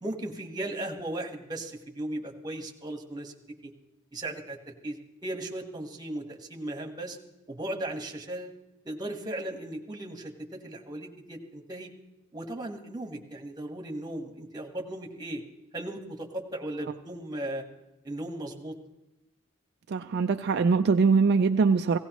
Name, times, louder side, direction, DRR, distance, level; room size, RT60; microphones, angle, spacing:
voice 1, 0.0-3.3 3.6-3.7 4.1-5.0 5.2-7.2 7.5-8.5 8.8-11.9 12.3-15.4 15.7-17.6 18.0-18.8, right 1 dB, 20° right, 3 dB, 1.4 m, -36 dB
voice 2, 19.9-22.0, right 4 dB, 50° right, 7 dB, 0.4 m, -22 dB
17.0 x 16.5 x 3.0 m, 0.96 s
head